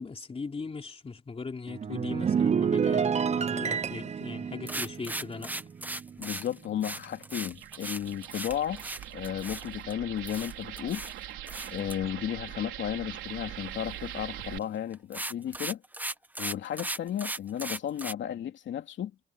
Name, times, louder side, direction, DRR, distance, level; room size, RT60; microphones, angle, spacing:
voice 1, 0.0-5.5, left 4 dB, 30° left, 3.6 m, -39 dB
sound 1, 1.7-6.3 6.6-6.9, right 7 dB, 35° right, 0.7 m, -29 dB
sound 2, 4.7-9.9 10.3-11.1 11.5-12.0 14.4-14.6 14.9-18.1, right 1 dB, 10° right, 1.1 m, -37 dB
voice 2, 6.2-8.8 9.1-11.0 11.7-15.8 16.4-19.1, left 10 dB, 70° left, 2.9 m, -34 dB
sound 3, 7.5-14.6, right 13 dB, 85° right, 4.3 m, -42 dB
cardioid pair, 90°, 20 cm